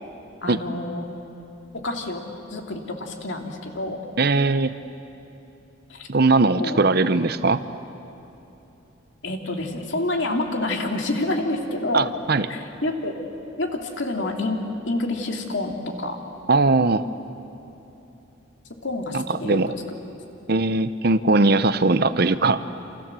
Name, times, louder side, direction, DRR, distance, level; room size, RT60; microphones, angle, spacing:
voice 1, 0.4-1.1 1.7-2.2 2.5-4.0 5.9-6.1 6.6-6.8 9.2-12.1 12.5-13.1 13.6-16.2 18.8-19.6, left 2 dB, 65° left, 3 dB, 2.8 m, -28 dB
voice 2, 4.2-4.7 6.1-7.6 11.9-12.5 16.5-17.0 19.1-19.7 20.5-22.6, right 3 dB, 50° right, 13 dB, 0.8 m, -20 dB
28.0 x 27.5 x 7.6 m, 3.0 s
head